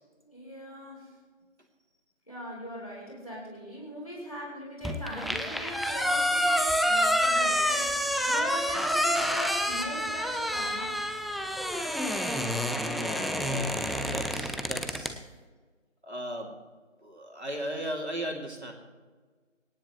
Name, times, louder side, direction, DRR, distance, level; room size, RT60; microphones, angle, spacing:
voice 1, 0.2-1.1 2.3-11.0, equal, 30° left, -4 dB, 4.2 m, -40 dB
sound 1, 4.8-15.1, equal, ahead, 0.5 m, -28 dB
voice 2, 12.9-15.2 16.0-16.5 17.0-18.7, equal, 60° right, 1 dB, 2.8 m, -37 dB
25.0 x 10.0 x 3.2 m, 1.4 s
figure-of-eight pair, 180°, 38 cm